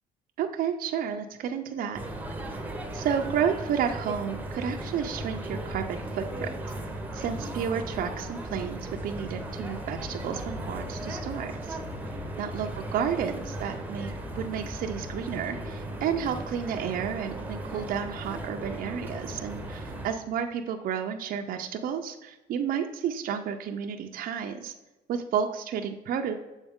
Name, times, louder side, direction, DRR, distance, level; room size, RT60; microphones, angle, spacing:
voice 1, 0.4-2.0 2.9-6.5 7.1-11.8 12.4-24.7 25.1-26.3, right 8 dB, 55° right, 4 dB, 0.5 m, -31 dB
sound 1, 1.9-20.1, right 1 dB, 10° right, 0.8 m, -36 dB
7.1 x 4.0 x 3.6 m, 1.1 s
cardioid pair, 110°, 17 cm